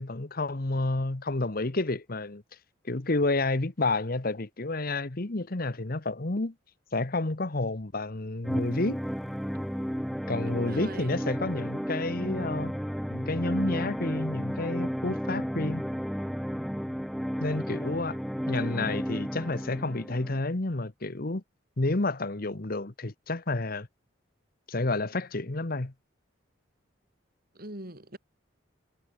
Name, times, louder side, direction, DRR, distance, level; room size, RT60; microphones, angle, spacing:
voice 1, 0.0-2.4 2.8-6.5 6.9-9.0 10.3-12.7 13.1-15.8 17.4-18.2 18.5-21.4 21.8-23.9 24.7-25.9, left 2 dB, 50° left, 1.2 m, -30 dB
sound 1, 8.4-20.4, equal, ahead, 4.0 m, -33 dB
voice 2, 10.4-11.2 17.7-17.8 27.5-28.2, right 1 dB, 50° right, 4.8 m, -42 dB
head